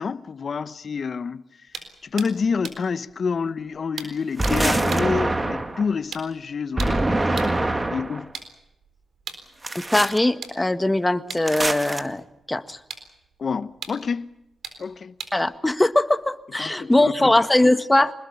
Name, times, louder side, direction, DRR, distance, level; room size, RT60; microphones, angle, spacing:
voice 1, 0.0-1.4 2.0-7.3 7.9-8.3 13.4-14.3 14.8-15.1 16.6-17.7, left 5 dB, 60° left, 0.9 m, -28 dB
sound 1, 1.7-7.7 8.2-16.6, right 6 dB, 75° right, 3.8 m, -42 dB
sound 2, 4.4-5.9 6.8-8.2 9.6-10.2 11.5-12.0, right 2 dB, 25° right, 2.1 m, -24 dB
voice 2, 9.8-12.8 15.3-18.1, left 1 dB, 15° left, 1.6 m, -21 dB
25.5 x 20.5 x 7.0 m
cardioid pair, 60°, 0 cm